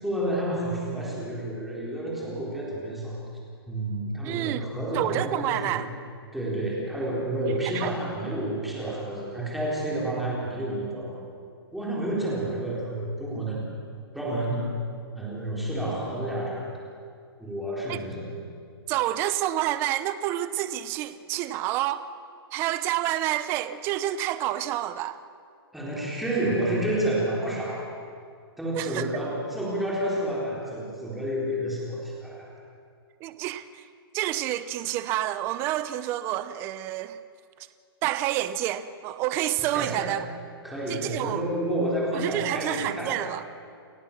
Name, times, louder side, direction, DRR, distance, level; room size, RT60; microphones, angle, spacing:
voice 1, 0.0-3.2 3.7-5.8 6.3-11.2 11.7-13.6 14.1-14.6 15.1-16.6 17.4-18.4 25.7-27.9 28.6-32.5 39.6-40.2 40.6-43.3, right 1 dB, ahead, -5 dB, 4.1 m, -30 dB
voice 2, 4.2-4.7 4.9-5.9 7.6-7.9 17.9-18.0 18.9-22.1 22.5-25.2 28.8-29.0 33.2-33.9 34.1-37.2 38.0-40.2 40.9-41.5 42.1-43.4, right 13 dB, 20° right, 13 dB, 0.6 m, -28 dB
29.5 x 14.5 x 7.3 m, 2.3 s
hypercardioid pair, 165°, 13 cm